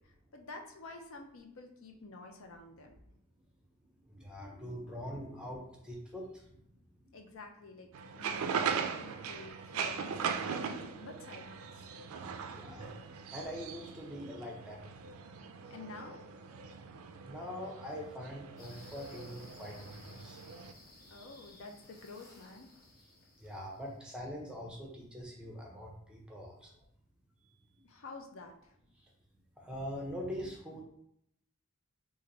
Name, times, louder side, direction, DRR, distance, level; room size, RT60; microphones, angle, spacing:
voice 1, 0.0-2.9 7.1-7.9 8.1-10.2 10.5-11.9 15.7-16.3 21.1-22.7 27.8-28.7, left 3 dB, 65° left, 3 dB, 0.5 m, -49 dB
voice 2, 4.1-6.6 8.1-8.3 11.9-15.0 17.2-20.4 23.4-26.7 29.6-30.8, equal, 5° right, -1 dB, 0.6 m, -43 dB
sound 1, 7.9-20.7, right 6 dB, 70° right, 0.3 m, -40 dB
sound 2, 18.6-24.0, left 2 dB, 40° left, 1.0 m, -57 dB
3.1 x 2.5 x 3.9 m, 0.73 s
head